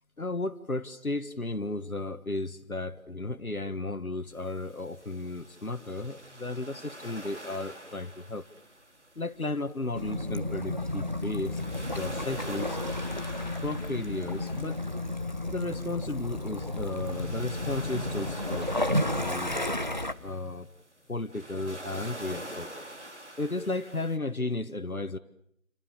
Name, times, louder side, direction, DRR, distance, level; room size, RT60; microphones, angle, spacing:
voice 1, 0.2-8.5 9.1-12.8 13.6-14.8 15.5-18.7 19.1-19.7 20.2-20.7 21.1-22.7 23.4-25.2, left 2 dB, 90° left, 8 dB, 1.7 m, -34 dB
sound 1, 4.3-24.2, right 1 dB, 55° right, 4.6 m, -46 dB
Waves surf / Splash splatter / Trickle dribble, 9.9-20.1, left 1 dB, 35° right, 1.2 m, -32 dB
29.5 x 26.0 x 7.0 m, 0.71 s
figure-of-eight pair, 175°, 42 cm